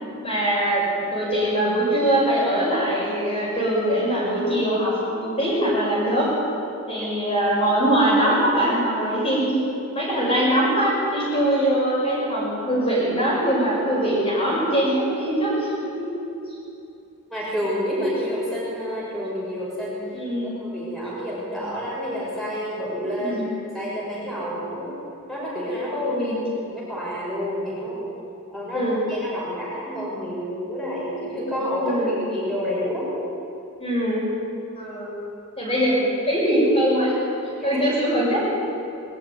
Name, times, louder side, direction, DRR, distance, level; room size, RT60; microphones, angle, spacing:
voice 1, 0.2-6.4 6.9-9.6 9.9-16.1 20.1-20.5 23.2-23.5 26.0-26.4 28.7-29.0 31.8-32.2 33.8-34.3 34.8-35.1 35.6-36.0 36.2-37.2 37.6-38.5, right 1 dB, 25° left, -6 dB, 6.5 m, -22 dB
voice 2, 17.3-20.0 20.4-24.9 25.3-26.3 26.7-28.0 28.5-32.0 32.3-33.1 37.6-37.9, equal, ahead, -8 dB, 6.3 m, -29 dB
21.0 x 13.5 x 9.7 m, 2.8 s
head